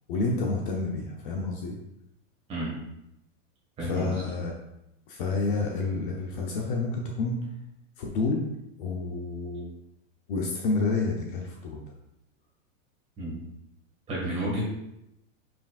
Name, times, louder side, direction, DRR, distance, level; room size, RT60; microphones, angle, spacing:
voice 1, 0.1-1.8 3.8-4.5 5.1-7.4 8.0-8.4 8.8-9.7 10.3-11.8, left 3 dB, 40° left, 0 dB, 0.8 m, -29 dB
voice 2, 3.8-4.2 13.2-13.4 14.1-14.6, right 1 dB, 15° right, -5 dB, 1.9 m, -31 dB
8.7 x 5.2 x 2.5 m, 0.84 s
supercardioid pair, 175°, 40 cm